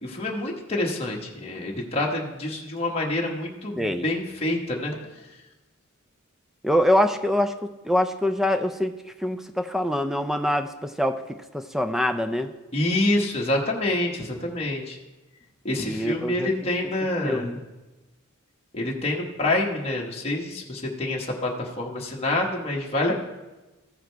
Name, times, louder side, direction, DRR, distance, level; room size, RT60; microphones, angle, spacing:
voice 1, 0.0-5.0 12.7-15.0 15.6-17.6 18.7-23.1, left 2 dB, 30° left, -2 dB, 1.1 m, -27 dB
voice 2, 3.8-4.1 6.6-8.9 9.2-11.2 11.5-12.5 15.7-16.5 17.2-17.6, left 1 dB, ahead, 8 dB, 0.4 m, -24 dB
14.5 x 5.0 x 4.5 m, 1.1 s
head